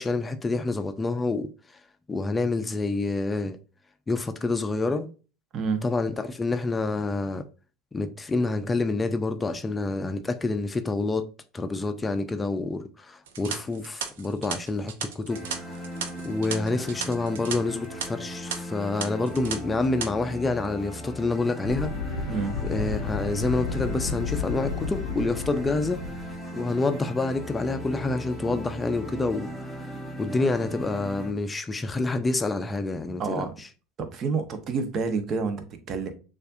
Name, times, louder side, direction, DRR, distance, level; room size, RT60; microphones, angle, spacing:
voice 1, 0.0-1.5 2.1-3.6 4.1-5.1 5.8-7.5 7.9-11.3 11.5-15.8 16.2-21.9 22.6-26.0 26.5-29.7 30.2-33.7, left 3 dB, 20° left, 0.5 m, -28 dB
voice 2, 5.5-5.8 22.3-22.6 33.2-33.6 34.0-36.1, right 5 dB, 45° right, 0.8 m, -29 dB
sound 1, 13.3-17.6 17.8-18.0 18.5-18.6 19.0-19.6 19.8-20.1, right 7 dB, 75° right, 0.6 m, -34 dB
sound 2, 15.3-31.3, equal, 15° right, 1.7 m, -38 dB
sound 3, 21.6-26.4, left 5 dB, 85° left, 0.6 m, -32 dB
6.5 x 2.5 x 2.4 m
hypercardioid pair, 80°, 0 cm